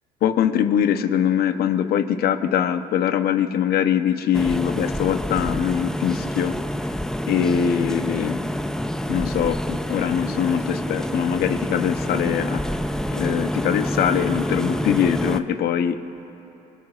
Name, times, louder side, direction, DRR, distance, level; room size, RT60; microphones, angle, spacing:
voice 1, 0.2-6.6 7.3-8.4 9.1-12.6 13.1-16.0, left 9 dB, 65° left, 9 dB, 0.9 m, -22 dB
sound 1, 4.3-15.4, equal, 5° left, 0.5 m, -27 dB
28.5 x 20.5 x 2.5 m, 2.9 s
cardioid pair, 110°, 17 cm